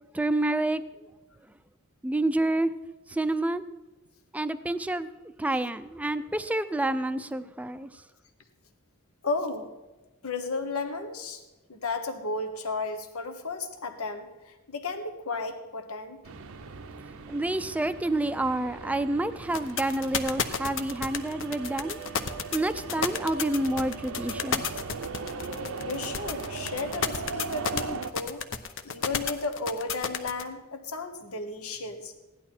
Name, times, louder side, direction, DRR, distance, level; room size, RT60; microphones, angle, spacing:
voice 1, 0.1-1.1 2.0-2.7 3.1-3.6 4.3-5.1 5.4-8.0 17.3-24.7, right 1 dB, 5° right, 12 dB, 0.5 m, -29 dB
voice 2, 9.2-9.7 10.2-11.4 11.7-16.2 25.8-28.4 28.8-32.1, left 3 dB, 85° left, 7 dB, 1.3 m, -34 dB
sound 1, 16.2-28.1, right 4 dB, 70° right, 0.7 m, -39 dB
sound 2, 19.5-30.4, left 6 dB, 60° left, 0.9 m, -30 dB
16.0 x 11.0 x 4.4 m, 1.1 s
head